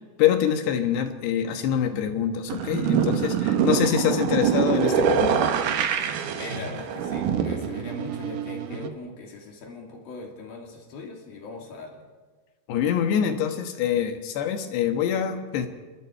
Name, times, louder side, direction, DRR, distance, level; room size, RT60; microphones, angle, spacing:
voice 1, 0.2-5.3 12.7-15.7, left 9 dB, 80° left, 6 dB, 3.5 m, -25 dB
sound 1, 2.5-8.9, right 8 dB, 65° right, 2.3 m, -25 dB
voice 2, 6.3-12.1, left 3 dB, 60° left, 1 dB, 4.3 m, -40 dB
26.0 x 22.0 x 4.6 m, 1.3 s
omnidirectional pair, 4.8 m